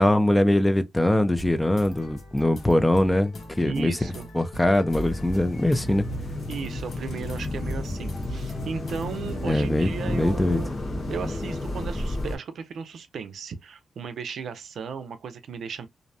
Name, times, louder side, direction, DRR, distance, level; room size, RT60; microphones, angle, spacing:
voice 1, 0.0-6.0 9.4-10.6, left 1 dB, 10° left, 0.4 m, -22 dB
sound 1, 1.2-9.5, left 1 dB, 70° left, 0.9 m, -43 dB
voice 2, 3.6-4.3 6.5-10.7 11.1-15.9, right 6 dB, 75° right, 0.5 m, -35 dB
sound 2, 4.9-12.4, left 1 dB, 45° left, 1.1 m, -32 dB
2.5 x 2.0 x 2.6 m
cardioid pair, 110°, 0 cm